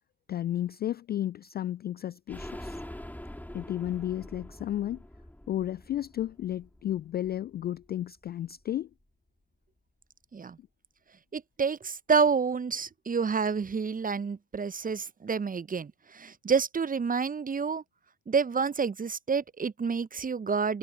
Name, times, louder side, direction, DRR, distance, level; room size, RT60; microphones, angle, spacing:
voice 1, 0.3-2.8 3.5-5.0 5.5-8.9, left 12 dB, 25° left, 0.4 m, -33 dB
sound 1, 2.3-7.9 8.2-8.3 8.6-8.7, left 1 dB, 5° left, 4.7 m, -45 dB
voice 2, 11.3-17.8 18.3-20.8, right 5 dB, 20° right, 1.0 m, -28 dB
figure-of-eight pair, 55°, 44 cm